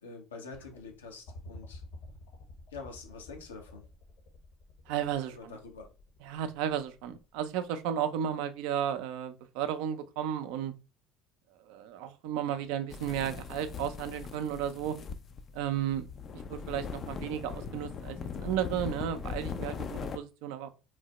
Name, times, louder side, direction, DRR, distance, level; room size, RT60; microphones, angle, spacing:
voice 1, 0.0-1.8 2.7-3.8 5.3-5.9, left 4 dB, 85° left, 0.7 m, -46 dB
sound 1, 0.5-7.7 8.8-8.9, left 2 dB, 60° left, 0.9 m, -51 dB
voice 2, 4.9-5.5 6.2-10.7 11.6-15.0 15.5-16.1 16.3-20.7, right 9 dB, 65° right, 0.4 m, -33 dB
sound 2, 12.9-20.2, left 6 dB, 45° left, 0.3 m, -40 dB
3.1 x 2.0 x 2.9 m
hypercardioid pair, 65°, 0 cm